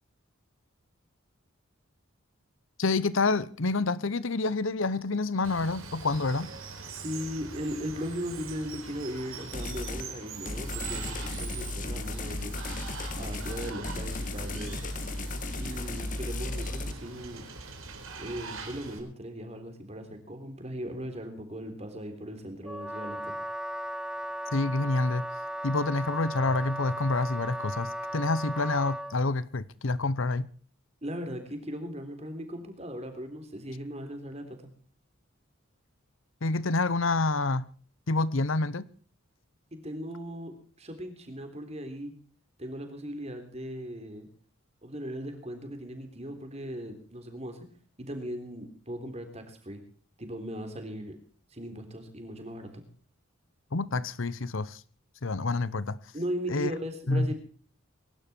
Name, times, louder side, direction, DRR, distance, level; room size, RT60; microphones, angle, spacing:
voice 1, 2.8-6.5 24.5-25.2 25.6-30.5 36.4-37.6 38.1-38.9 53.7-54.8 55.2-56.0 56.5-56.7 57.1-57.3, left 3 dB, 70° left, 0.9 m, -28 dB
Water, 5.4-19.0, right 4 dB, 75° right, 4.4 m, -43 dB
voice 2, 6.9-12.6 13.1-14.9 15.5-17.4 18.2-23.3 31.0-34.6 39.7-42.1 42.6-44.3 44.8-47.7 48.0-49.8 50.2-51.2 51.5-52.8 56.1-57.3, equal, 30° right, 3.6 m, -38 dB
sound 1, 9.5-10.1 10.5-16.9, left 2 dB, 40° left, 1.6 m, -35 dB
Wind instrument woodwind instrument, 22.7-29.2, right 1 dB, 5° right, 0.7 m, -36 dB
23.0 x 12.0 x 4.5 m
head